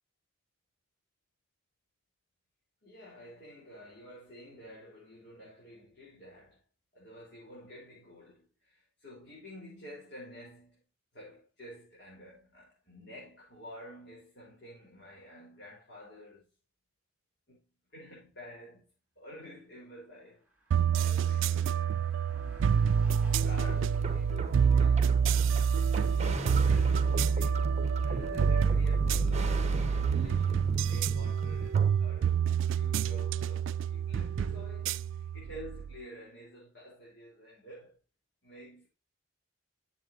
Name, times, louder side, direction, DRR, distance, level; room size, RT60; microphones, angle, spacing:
voice 1, 2.8-6.6 6.9-10.8 11.1-16.5 17.5-17.6 17.9-20.4 20.9-21.9 23.2-27.8 28.0-38.0 38.4-38.9, left 1 dB, 55° left, 4.2 m, -50 dB
Car passing by, 20.2-36.3, equal, 5° right, 2.7 m, -60 dB
sound 1, 20.7-36.0, right 7 dB, 70° right, 0.3 m, -27 dB
sound 2, 23.4-31.9, right 2 dB, 35° right, 1.2 m, -39 dB
11.0 x 7.6 x 2.8 m
head